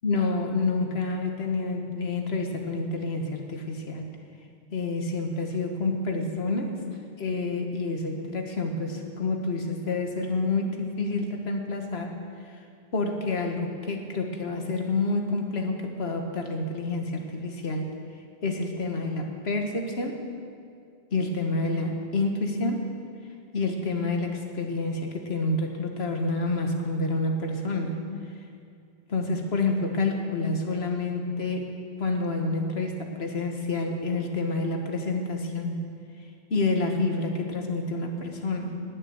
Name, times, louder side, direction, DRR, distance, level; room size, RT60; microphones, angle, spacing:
voice 1, 0.0-4.1 4.7-6.8 7.2-12.1 12.9-17.9 18.4-20.2 21.1-22.9 23.5-28.0 29.1-31.7 32.0-35.8 36.5-38.8, left 3 dB, 80° left, 3 dB, 1.6 m, -28 dB
19.5 x 6.5 x 8.0 m, 2.3 s
omnidirectional pair, 1.0 m